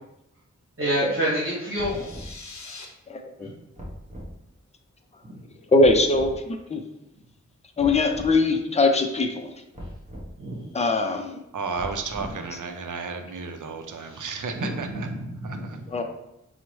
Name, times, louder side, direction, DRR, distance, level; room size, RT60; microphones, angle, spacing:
voice 1, 0.8-2.1 3.4-3.5 10.4-10.7 14.0-14.2 14.5-15.7, right 1 dB, 45° right, -8 dB, 1.2 m, -28 dB
sound 1, 1.6-2.9, left 4 dB, 65° left, 0.7 m, -43 dB
sound 2, 1.8-2.4 3.8-4.3 5.8-6.4 7.8-8.4 9.7-10.3 11.8-12.5, equal, 25° right, 0.9 m, -39 dB
voice 2, 3.1-3.5 5.7-6.8 7.8-9.5 10.7-11.4 15.9-16.0, left 2 dB, 20° left, 4 dB, 0.5 m, -22 dB
voice 3, 11.5-15.1 15.4-15.8, right 4 dB, 85° right, 6 dB, 0.5 m, -33 dB
5.8 x 2.1 x 3.1 m, 0.83 s
wide cardioid pair, 70°, 30 cm